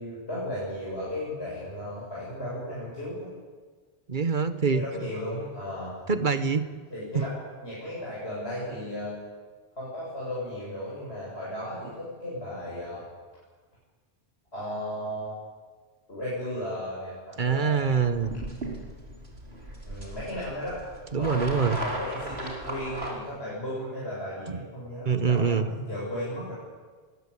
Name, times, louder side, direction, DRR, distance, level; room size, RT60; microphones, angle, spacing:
voice 1, 0.0-3.3 4.7-5.9 6.9-7.4 7.6-9.1 9.8-13.0 14.5-15.3 16.1-18.0 19.8-20.8 21.2-26.5, left 1 dB, 90° left, -7 dB, 8.2 m, -35 dB
voice 2, 4.1-4.8 6.1-6.7 7.1-7.2 17.4-18.3 21.1-21.8 24.5-24.6 25.0-25.7, right 5 dB, 50° right, 10 dB, 1.5 m, -24 dB
sound 1, 18.0-23.1, right 1 dB, 85° right, 4.6 m, -37 dB
23.0 x 21.0 x 8.6 m, 1.5 s
omnidirectional pair, 1.0 m